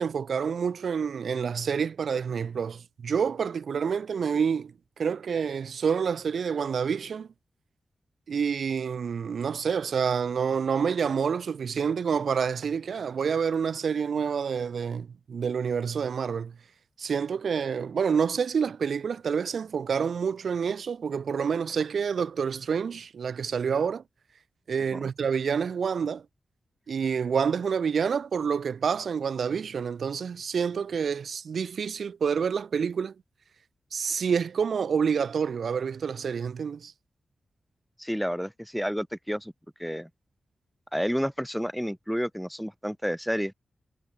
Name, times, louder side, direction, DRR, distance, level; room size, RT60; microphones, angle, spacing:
voice 1, 0.0-7.3 8.3-16.5 17.0-24.0 24.7-26.2 26.9-33.1 33.9-36.9, right 6 dB, 65° right, 0.5 m, -28 dB
voice 2, 38.0-39.5 39.8-40.1 40.9-43.5, equal, ahead, 0.6 m, -30 dB
wide cardioid pair, 135°, 0 cm